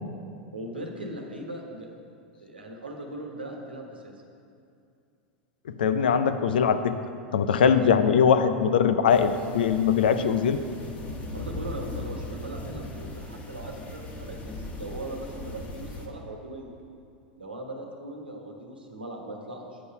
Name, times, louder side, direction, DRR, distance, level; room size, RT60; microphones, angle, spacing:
voice 1, 0.5-1.9 2.4-4.1 11.3-16.7 17.4-19.8, right 1 dB, 85° right, 1 dB, 1.2 m, -39 dB
voice 2, 5.8-6.9 7.3-10.6, left 7 dB, 70° left, 10 dB, 0.5 m, -21 dB
sound 1, 9.1-16.1, left 2 dB, 30° left, 1.4 m, -38 dB
8.4 x 5.4 x 5.7 m, 2.5 s
figure-of-eight pair, 90°, 5 cm